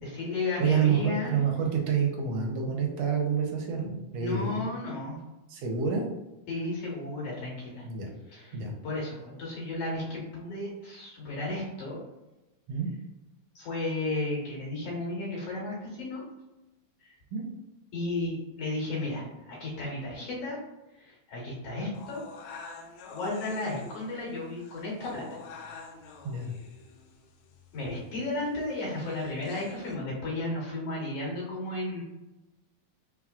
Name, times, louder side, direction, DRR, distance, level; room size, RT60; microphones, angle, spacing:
voice 1, 0.0-1.3 4.2-5.2 6.5-7.8 8.3-8.6 8.8-12.0 13.6-16.2 17.9-20.6 21.0-22.2 23.1-25.3 27.7-32.0, left 2 dB, 60° left, -4 dB, 2.3 m, -33 dB
voice 2, 0.6-4.6 5.5-6.1 7.8-8.1 8.5-8.7 12.7-12.9 17.3-17.5 26.2-26.5, right 6 dB, 70° right, 1 dB, 1.6 m, -28 dB
sound 1, 21.9-30.0, left 4 dB, 80° left, 1.8 m, -48 dB
4.7 x 3.7 x 2.4 m, 1.0 s
omnidirectional pair, 3.4 m